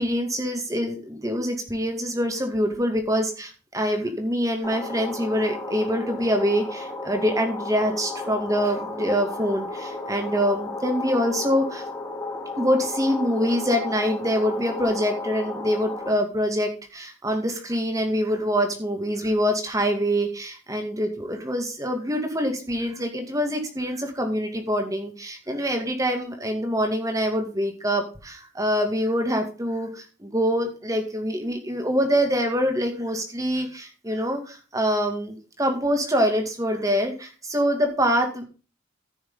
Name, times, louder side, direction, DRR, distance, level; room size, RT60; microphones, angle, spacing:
voice 1, 0.0-11.9 12.6-38.4, equal, 15° right, 4 dB, 2.3 m, -25 dB
sound 1, 4.6-16.1, left 2 dB, 15° left, 2.6 m, -34 dB
15.0 x 6.4 x 4.0 m, 0.34 s
head